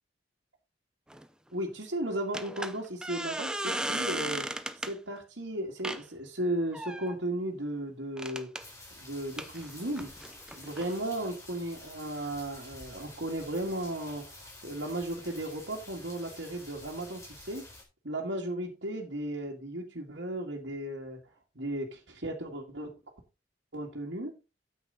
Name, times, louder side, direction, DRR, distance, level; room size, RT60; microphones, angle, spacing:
sound 1, 1.1-1.3 2.3-4.9 5.8-6.0 6.7-7.2 8.2-8.6 9.4-10.9, right 1 dB, 5° right, 0.8 m, -35 dB
voice 1, 1.5-4.5 4.8-8.5 9.0-10.1 10.5-17.6 18.0-21.2 21.6-22.9 23.7-24.3, right 1 dB, 75° right, -3 dB, 2.1 m, -35 dB
sound 2, 8.6-17.8, left 2 dB, 15° left, 4.4 m, -50 dB
9.1 x 8.3 x 4.0 m, 0.29 s
head